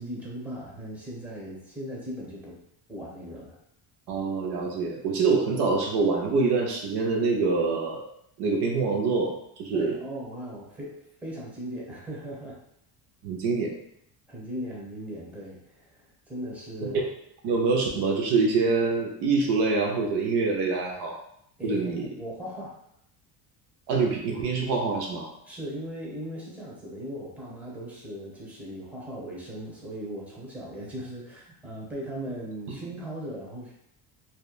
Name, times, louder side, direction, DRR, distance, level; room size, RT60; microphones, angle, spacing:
voice 1, 0.0-2.6 2.9-3.6 9.7-12.6 14.3-17.0 21.6-22.7 25.5-33.7, equal, 5° right, -4 dB, 0.9 m, -38 dB
voice 2, 4.1-8.1 8.4-9.9 13.2-13.7 16.8-17.0 17.4-21.2 21.6-22.1 23.9-25.3 32.7-32.8, right 4 dB, 65° right, 0 dB, 0.6 m, -25 dB
2.8 x 2.2 x 2.3 m, 0.73 s
cardioid pair, 100°, 45 cm